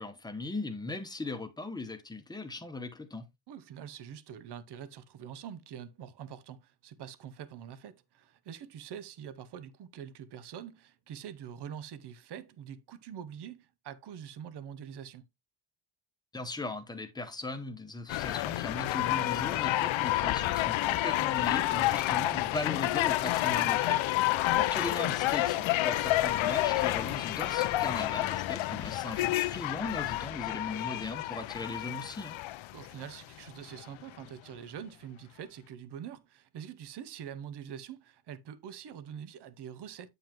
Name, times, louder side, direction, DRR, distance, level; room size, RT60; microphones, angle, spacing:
voice 1, 0.0-3.3 16.3-32.4, left 2 dB, 10° left, 0.9 m, -38 dB
voice 2, 3.5-15.3 24.4-24.7 32.7-40.1, right 9 dB, 55° right, 0.7 m, -45 dB
sound 1, 18.1-33.2 33.8-33.9, left 16 dB, 70° left, 0.6 m, -29 dB
9.0 x 5.4 x 2.9 m
cardioid pair, 160°, 49 cm